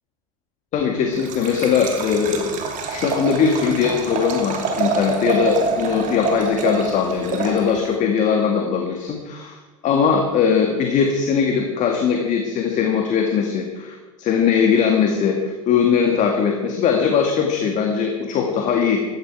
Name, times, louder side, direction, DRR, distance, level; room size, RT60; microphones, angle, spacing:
voice 1, 0.7-9.6 9.8-19.0, left 6 dB, 45° left, 2 dB, 2.0 m, -20 dB
Liquid, 1.1-8.0, right 5 dB, 45° right, 2.7 m, -26 dB
15.5 x 13.5 x 4.7 m, 1.3 s
hypercardioid pair, 80°, 18 cm